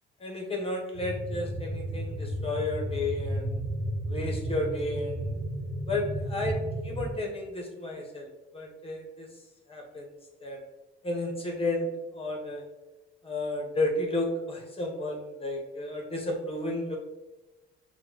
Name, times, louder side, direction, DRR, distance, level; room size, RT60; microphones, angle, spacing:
voice 1, 0.2-3.6 4.1-5.3 5.9-8.3 8.5-9.3 9.7-10.1 10.4-10.6 11.0-11.9 12.1-12.6 13.2-17.0, left 2 dB, 30° left, 0 dB, 0.9 m, -32 dB
sound 1, 0.9-7.1, right 1 dB, 70° right, 0.8 m, -33 dB
5.7 x 2.2 x 2.9 m, 1.1 s
cardioid pair, 90°, 20 cm